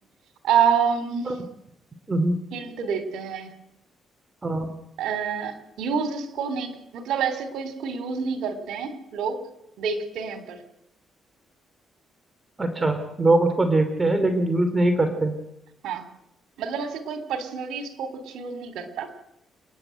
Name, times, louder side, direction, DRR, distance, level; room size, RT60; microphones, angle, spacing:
voice 1, 0.4-1.4 2.5-3.5 5.0-9.4 9.8-10.6 15.8-16.1 16.6-19.1, right 7 dB, 80° right, 9 dB, 3.4 m, -27 dB
voice 2, 2.1-2.4 4.4-4.7 12.6-15.3, right 2 dB, 20° right, 7 dB, 2.9 m, -22 dB
28.5 x 10.5 x 9.1 m, 0.80 s
cardioid pair, 90°, 0 cm